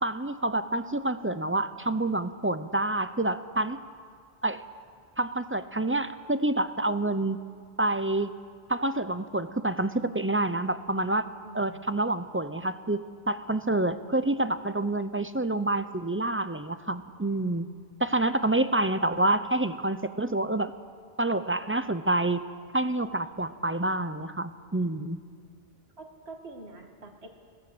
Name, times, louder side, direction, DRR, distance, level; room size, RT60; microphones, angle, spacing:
voice 1, 0.0-3.8 4.4-4.6 5.2-7.4 7.8-8.3 8.7-11.3 11.5-13.0 13.3-17.7 18.0-20.7 21.2-22.4 22.7-25.2, right 2 dB, 15° right, 11 dB, 0.5 m, -27 dB
voice 2, 11.4-11.9 26.0-27.3, right 2 dB, 80° right, 4 dB, 2.2 m, -46 dB
20.5 x 17.0 x 8.0 m, 2.1 s
omnidirectional pair, 1.1 m